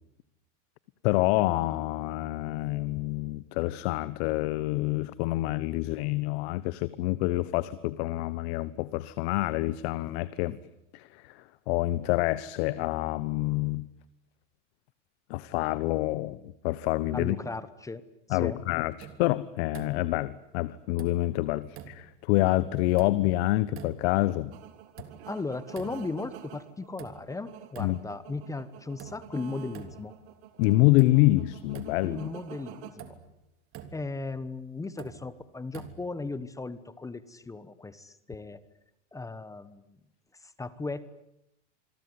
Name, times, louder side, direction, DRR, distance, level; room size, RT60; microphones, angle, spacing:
voice 1, 1.0-10.6 10.9-13.9 15.3-16.4 16.6-17.4 18.3-24.5 27.8-28.0 30.6-32.3, left 18 dB, 55° left, 17 dB, 1.2 m, -27 dB
voice 2, 17.1-18.0 18.3-18.6 25.3-30.1 32.0-33.1 33.9-38.6 39.1-39.8 40.4-41.2, left 3 dB, 10° left, 16 dB, 1.2 m, -37 dB
sound 1, 19.0-19.4 19.7-20.2 21.0-21.4 21.7-22.2 23.0-23.4 23.7-24.2 25.0-25.4 25.7-26.3 27.0-27.4 27.7-28.2 29.0-29.4 29.7-30.3 31.0-31.3 31.7-32.3 33.0-33.3 33.7-34.2 35.0-35.3 35.7-36.3, right 8 dB, 35° right, 3.2 m, -47 dB
sound 2, 24.5-32.9, right 13 dB, 60° right, 3.5 m, -49 dB
27.0 x 22.5 x 9.7 m, 0.82 s
supercardioid pair, 140°, 36 cm